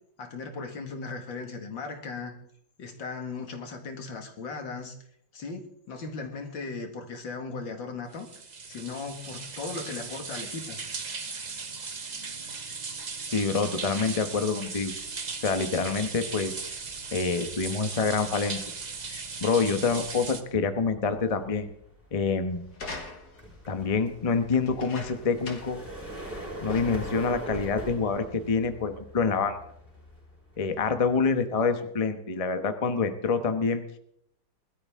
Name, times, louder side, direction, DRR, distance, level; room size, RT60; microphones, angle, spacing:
voice 1, 0.2-2.3 2.8-5.0 5.3-8.3 8.6-10.8, left 4 dB, 75° left, 4 dB, 2.7 m, -37 dB
sound 1, 8.1-20.4, right 4 dB, 35° right, 0.7 m, -37 dB
voice 2, 13.3-14.9 15.4-16.6 17.1-18.6 19.1-21.7 22.1-22.7 23.7-25.8 26.6-29.6 30.6-33.8, left 4 dB, 25° left, 8 dB, 0.9 m, -27 dB
sound 2, 14.9-31.5, equal, 5° left, 5.1 m, -43 dB
sound 3, 22.7-23.5 24.6-25.9 26.2-26.3 26.7-27.1 27.9-28.0, left 3 dB, 55° left, 2.5 m, -42 dB
21.0 x 13.0 x 3.6 m, 0.70 s
omnidirectional pair, 2.1 m